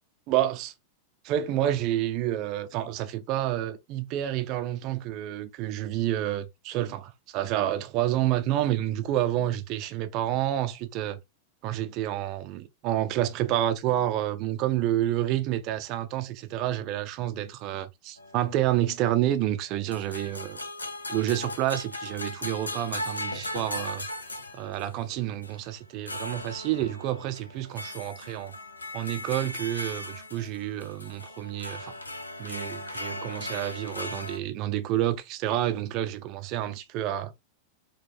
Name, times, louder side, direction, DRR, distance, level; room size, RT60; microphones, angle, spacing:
voice 1, 0.3-0.7 1.2-11.2 11.6-20.6 21.1-24.1 24.5-28.6 28.9-31.9 32.4-37.3, right 13 dB, 40° right, 0.6 m, -29 dB
sound 1, 18.2-19.1 19.9-25.1 25.4-25.6 26.1-34.4, left 1 dB, 80° left, 0.6 m, -38 dB
4.6 x 2.4 x 3.6 m
figure-of-eight pair, 90°, 0 cm